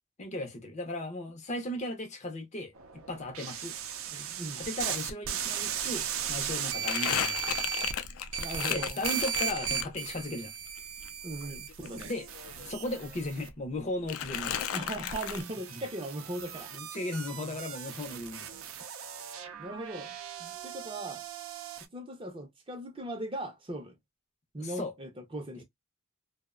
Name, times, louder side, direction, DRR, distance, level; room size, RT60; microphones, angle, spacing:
voice 1, 0.2-3.8 4.6-7.6 8.7-10.5 11.9-12.3 12.6-14.6 15.7-15.8 16.7-18.5 24.6-24.9 25.6-25.7, left 1 dB, 35° left, 0.5 m, -36 dB
sound 1, 2.8-8.1 8.3-13.5 15.1-21.9, right 8 dB, 80° right, 0.5 m, -37 dB
voice 2, 4.1-4.6 8.4-9.0 11.2-12.1 14.7-16.7 19.6-20.1 20.4-21.2 21.9-24.0 24.5-25.6, right 1 dB, 25° right, 0.5 m, -39 dB
Crumpling crinkling, 5.4-5.5 5.8-10.2 10.6-12.7 13.0-13.8 14.1-15.4, left 9 dB, 90° left, 0.4 m, -35 dB
2.5 x 2.0 x 2.3 m
head